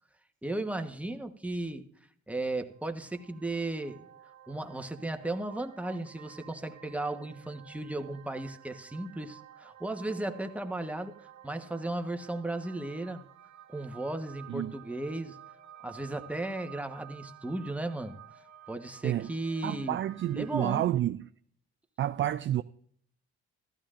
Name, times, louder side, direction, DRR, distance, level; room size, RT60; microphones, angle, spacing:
voice 1, 0.4-1.9 2.3-4.0 4.5-11.2 11.4-13.3 13.7-15.4 15.8-18.2 18.7-20.0 20.3-20.9, right 2 dB, 5° right, 1.2 m, -35 dB
sound 1, 2.7-20.9, right 11 dB, 55° right, 1.3 m, -53 dB
voice 2, 19.6-21.2 22.0-22.6, right 12 dB, 40° right, 0.4 m, -29 dB
14.5 x 13.0 x 2.5 m
supercardioid pair, 70°, 33 cm